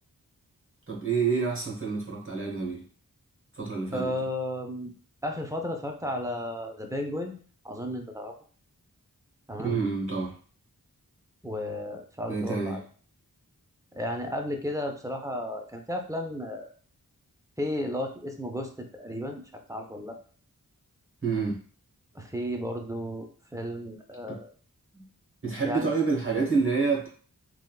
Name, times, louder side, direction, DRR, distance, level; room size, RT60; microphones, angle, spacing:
voice 1, 0.9-2.8 3.5-4.1 9.6-10.3 12.3-12.8 21.2-21.6 24.3-24.4 24.9-25.0 25.4-27.1, right 4 dB, 35° right, -2 dB, 1.1 m, -28 dB
voice 2, 3.9-4.9 5.2-7.4 7.6-8.3 9.5-9.8 11.4-12.8 13.9-16.7 17.6-19.4 19.7-20.2 22.1-23.3 23.5-24.5 25.6-25.9, left 1 dB, 10° right, 3 dB, 0.5 m, -33 dB
3.3 x 2.3 x 2.3 m, 0.44 s
wide cardioid pair, 45°, 36 cm